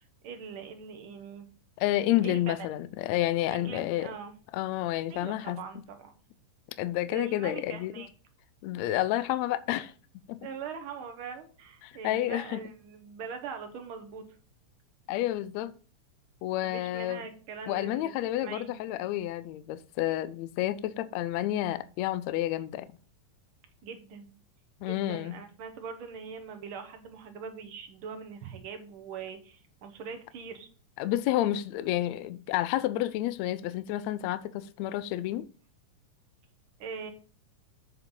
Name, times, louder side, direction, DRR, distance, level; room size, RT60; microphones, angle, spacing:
voice 1, 0.2-1.5 2.2-2.6 3.5-4.3 5.1-6.2 7.1-8.1 10.4-14.2 16.6-18.8 23.8-24.3 24.8-30.7 36.8-37.1, right 6 dB, 55° right, 1.6 m, -42 dB
voice 2, 1.8-4.1 4.5-5.6 6.8-7.9 8.6-9.9 10.3-10.4 11.8-12.6 15.1-15.7 16.4-17.2 17.7-22.9 24.8-25.4 31.0-35.5, left 14 dB, 80° left, 1.7 m, -30 dB
7.5 x 7.1 x 3.8 m
omnidirectional pair, 3.5 m